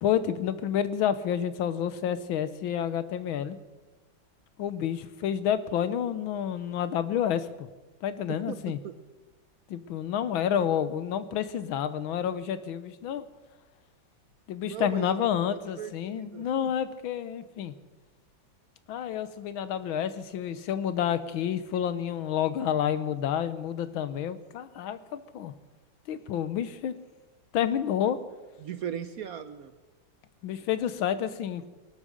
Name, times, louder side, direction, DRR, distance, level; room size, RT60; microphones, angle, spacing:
voice 1, 0.0-3.6 4.6-7.7 8.0-8.8 9.7-13.3 14.5-17.7 18.9-25.5 26.1-27.0 27.5-28.2 30.4-31.7, left 9 dB, 90° left, 13 dB, 1.7 m, -29 dB
voice 2, 8.3-8.9 14.6-15.2 15.8-16.7 28.0-28.1 28.6-29.7, right 9 dB, 65° right, 10 dB, 0.9 m, -38 dB
23.5 x 8.8 x 6.5 m, 1.2 s
omnidirectional pair, 2.1 m